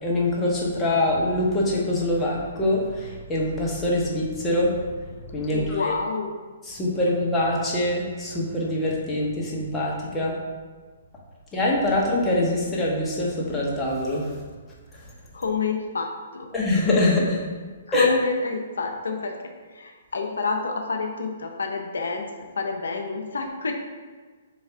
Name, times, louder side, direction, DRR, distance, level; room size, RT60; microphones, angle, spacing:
voice 1, 0.0-4.8 5.3-5.9 6.7-10.3 11.5-14.4 14.9-15.0 16.5-17.4 17.9-18.1, left 1 dB, 10° left, -5 dB, 0.8 m, -24 dB
voice 2, 5.5-6.4 15.3-16.5 17.9-23.7, left 4 dB, 80° left, 3 dB, 0.5 m, -28 dB
3.3 x 2.4 x 4.3 m, 1.4 s
hypercardioid pair, 140°, 0 cm